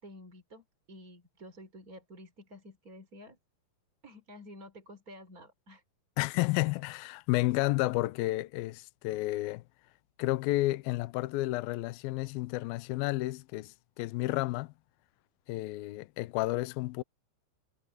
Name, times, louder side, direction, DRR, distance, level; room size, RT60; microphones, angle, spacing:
voice 1, 0.0-3.4 4.0-5.8, left 1 dB, 20° right, 3.5 m, -51 dB
voice 2, 6.2-9.6 10.2-14.7 15.5-17.0, left 19 dB, 85° left, 2.1 m, -31 dB
omnidirectional pair, 5.1 m